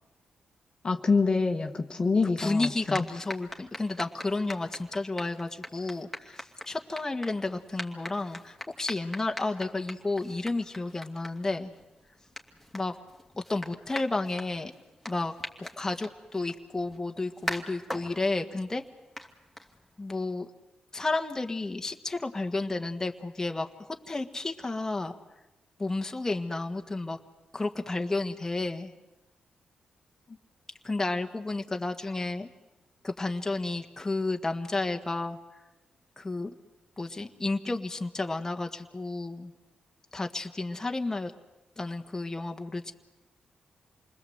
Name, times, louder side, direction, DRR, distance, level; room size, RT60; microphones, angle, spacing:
voice 1, 0.8-3.0, left 4 dB, 40° left, 5 dB, 1.5 m, -26 dB
voice 2, 2.2-11.7 12.7-13.0 13.5-14.7 15.1-18.8 20.0-20.5 20.9-25.1 25.8-27.2 27.5-28.9 30.8-32.5 33.0-35.4 36.2-36.5 37.0-39.5 40.1-41.3 41.8-42.9, left 2 dB, 20° left, 4 dB, 1.6 m, -32 dB
sound 1, 2.4-20.1, left 1 dB, 5° left, 2.6 m, -43 dB
27.5 x 20.5 x 8.0 m, 1.0 s
cardioid pair, 75°, 2 cm